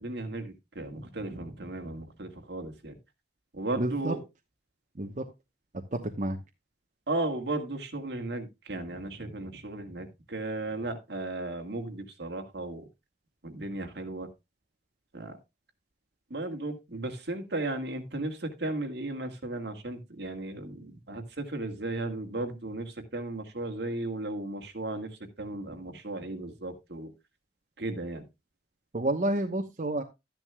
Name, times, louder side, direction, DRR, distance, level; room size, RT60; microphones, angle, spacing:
voice 1, 0.0-3.0 3.5-4.2 7.1-12.9 13.4-14.3 15.1-15.4 16.3-27.1 27.8-28.2, right 2 dB, 70° right, 2.0 m, -35 dB
voice 2, 3.8-4.2 4.9-5.3 5.9-6.4 28.9-30.0, right 1 dB, 45° right, 1.0 m, -29 dB
12.5 x 10.5 x 2.3 m
head